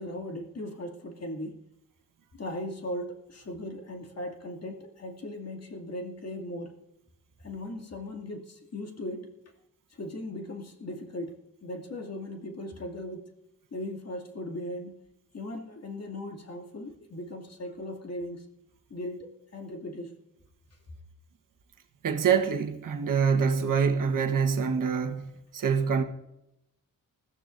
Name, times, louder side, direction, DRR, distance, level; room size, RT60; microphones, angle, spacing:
voice 1, 0.0-1.6 2.3-6.8 7.4-9.4 9.9-13.3 13.7-15.0 15.3-18.5 18.9-20.2, left 1 dB, 50° left, 2.6 m, -38 dB
voice 2, 22.0-26.0, right 6 dB, 70° right, 1.4 m, -25 dB
20.5 x 14.5 x 2.7 m
cardioid pair, 80°, 34 cm